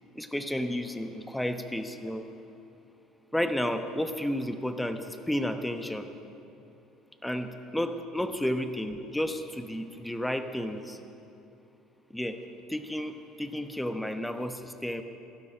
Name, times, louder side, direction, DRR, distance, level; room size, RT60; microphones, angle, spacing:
voice 1, 0.1-2.3 3.3-6.1 7.2-11.0 12.1-12.4 12.7-15.0, left 1 dB, 5° left, 8 dB, 1.1 m, -32 dB
16.5 x 12.0 x 5.1 m, 2.8 s
hypercardioid pair, 70°, 0 cm